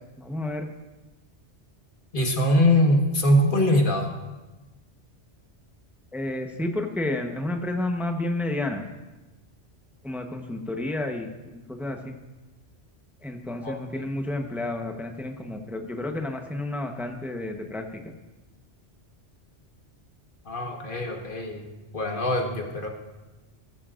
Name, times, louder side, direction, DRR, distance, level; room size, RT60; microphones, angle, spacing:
voice 1, 0.2-0.7 6.1-8.8 10.0-12.2 13.2-18.1, left 2 dB, ahead, 4 dB, 0.9 m, -31 dB
voice 2, 2.1-4.1 13.6-14.0 20.4-21.6 21.9-22.9, left 1 dB, 45° left, 2 dB, 1.7 m, -22 dB
19.5 x 14.0 x 2.5 m, 1.1 s
omnidirectional pair, 1.2 m